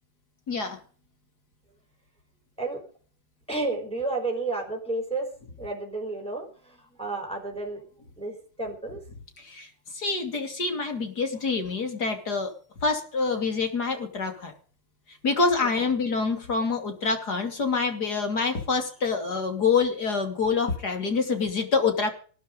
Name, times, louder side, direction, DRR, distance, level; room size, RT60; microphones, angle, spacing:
voice 1, 0.5-0.8 9.4-12.5 12.8-14.5 15.1-22.1, left 4 dB, 45° left, 5 dB, 3.2 m, -26 dB
voice 2, 3.5-5.3 5.6-6.5 7.0-7.8 8.2-9.0, right 3 dB, ahead, 2 dB, 5.1 m, -31 dB
19.5 x 10.0 x 5.3 m, 0.42 s
omnidirectional pair, 2.4 m